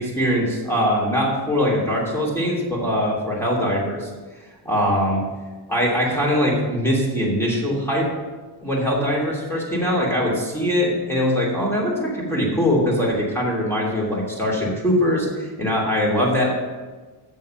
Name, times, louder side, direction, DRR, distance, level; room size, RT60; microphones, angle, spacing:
voice 1, 0.0-4.1 4.6-5.3 5.7-8.1 8.6-16.5, equal, 5° left, -4 dB, 2.9 m, -22 dB
7.5 x 7.4 x 7.6 m, 1.3 s
cardioid pair, 150°, 50 cm